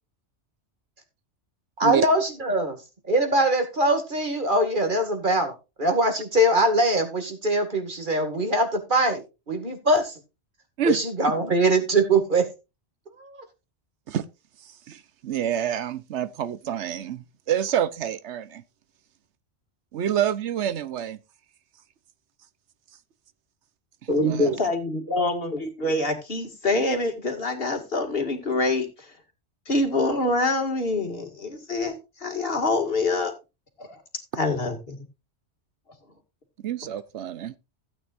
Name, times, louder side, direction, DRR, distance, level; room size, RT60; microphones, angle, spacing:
voice 1, 1.8-2.8 3.1-9.2 9.5-10.2 10.8-12.5 13.2-13.4 24.1-24.6, right 1 dB, 45° right, 2.2 m, -22 dB
voice 2, 14.9-18.6 19.9-21.2 24.3-24.5 36.6-37.5, right 9 dB, 80° right, 1.0 m, -27 dB
voice 3, 24.5-29.1 29.7-33.3 33.8-34.0 34.4-35.0, left 2 dB, 55° left, 2.3 m, -26 dB
16.0 x 8.8 x 2.5 m
omnidirectional pair, 1.2 m